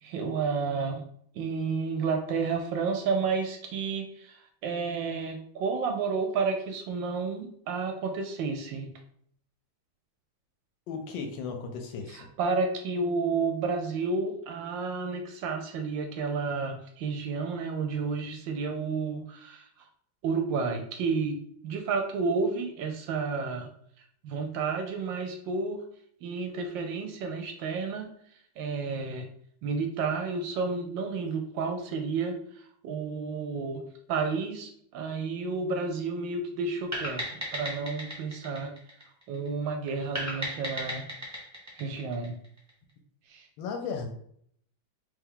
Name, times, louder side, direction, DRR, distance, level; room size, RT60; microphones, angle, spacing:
voice 1, 0.0-1.0 1.3-8.9 12.1-19.8 20.2-21.4 21.6-23.7 24.2-25.8 26.2-28.1 28.6-29.3 29.6-33.8 34.1-38.7 39.3-41.1 41.8-42.4 43.3-43.5, right 4 dB, 75° right, 4 dB, 1.2 m, -31 dB
voice 2, 10.9-12.3 43.6-44.1, left 5 dB, 75° left, 4 dB, 1.2 m, -35 dB
sound 1, 36.9-39.5 40.1-42.7, equal, 10° right, 1.0 m, -36 dB
3.4 x 2.9 x 3.7 m, 0.65 s
omnidirectional pair, 2.3 m